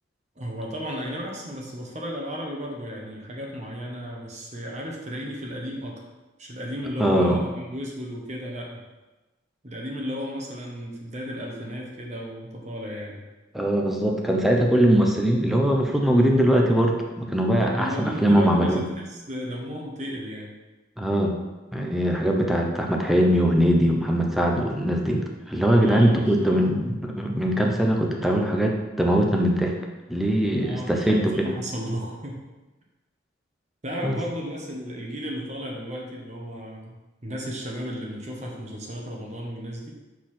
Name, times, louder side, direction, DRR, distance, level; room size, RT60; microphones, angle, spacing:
voice 1, 0.4-6.0 6.4-8.8 9.6-13.2 17.7-20.6 25.8-26.6 30.6-32.4 33.8-36.9 37.2-39.9, equal, 35° right, -1 dB, 1.1 m, -34 dB
voice 2, 7.0-7.4 13.5-18.8 21.0-21.4 21.7-29.7 30.1-31.5 34.0-34.2, equal, ahead, 0 dB, 0.7 m, -21 dB
6.6 x 4.0 x 4.3 m, 1.1 s
head